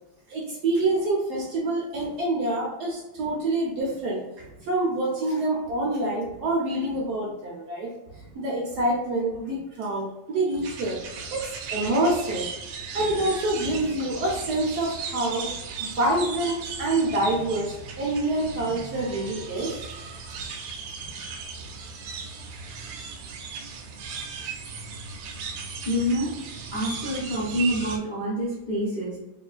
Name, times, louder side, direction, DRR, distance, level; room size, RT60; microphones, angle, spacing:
voice 1, 0.3-12.5 12.9-19.9, right 2 dB, 65° right, -3 dB, 1.1 m, -27 dB
sound 1, 10.6-28.0, right 5 dB, 80° right, 1.4 m, -37 dB
voice 2, 25.8-26.3 26.7-29.2, equal, 45° left, -8 dB, 0.6 m, -27 dB
3.6 x 3.0 x 2.4 m, 0.97 s
omnidirectional pair, 2.4 m